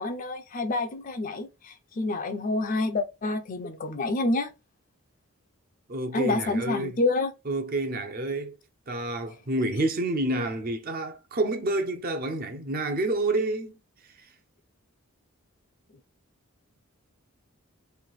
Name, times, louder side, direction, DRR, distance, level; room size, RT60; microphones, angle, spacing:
voice 1, 0.0-4.5 6.1-7.3, left 2 dB, 40° left, 0.5 m, -28 dB
voice 2, 5.9-6.9 7.5-8.6 8.9-13.8, right 2 dB, 40° right, 0.6 m, -28 dB
3.3 x 2.6 x 3.9 m
head